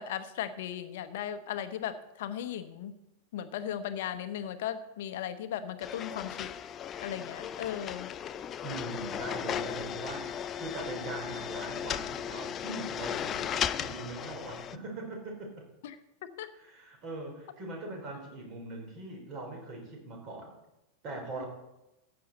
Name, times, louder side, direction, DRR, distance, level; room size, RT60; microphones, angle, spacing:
voice 1, 0.0-2.9 3.3-6.5 7.0-8.1 15.8-16.0 16.2-16.5 21.3-21.4, left 10 dB, 55° left, 11 dB, 0.9 m, -37 dB
sound 1, 5.8-14.8, left 9 dB, 30° left, 0.4 m, -36 dB
voice 2, 8.6-15.7 16.5-20.5 21.0-21.5, right 2 dB, 35° right, 2 dB, 3.9 m, -41 dB
14.0 x 8.8 x 4.1 m, 0.91 s
figure-of-eight pair, 90°, 0 cm